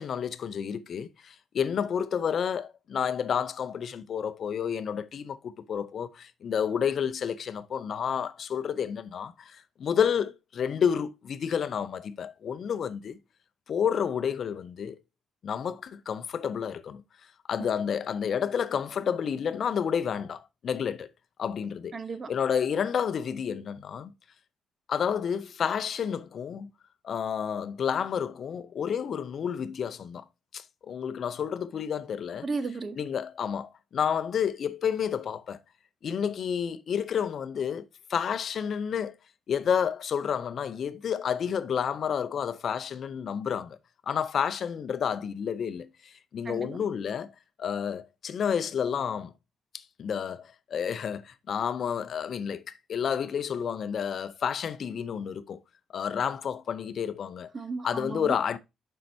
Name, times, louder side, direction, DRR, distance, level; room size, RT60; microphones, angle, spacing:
voice 1, 0.0-13.2 13.7-15.0 15.4-17.0 17.5-21.1 21.4-22.0 22.3-24.1 24.9-26.7 27.0-30.2 30.5-32.5 33.0-35.6 36.0-39.2 39.5-43.8 44.1-47.3 47.6-49.3 49.7-55.6 55.9-57.5 57.8-58.6, left 7 dB, 55° left, 0.6 m, -30 dB
voice 2, 21.9-22.3 32.4-33.0 46.4-46.8 57.5-58.3, right 4 dB, 40° right, 0.9 m, -34 dB
7.4 x 5.5 x 2.7 m
cardioid pair, 90°, 0 cm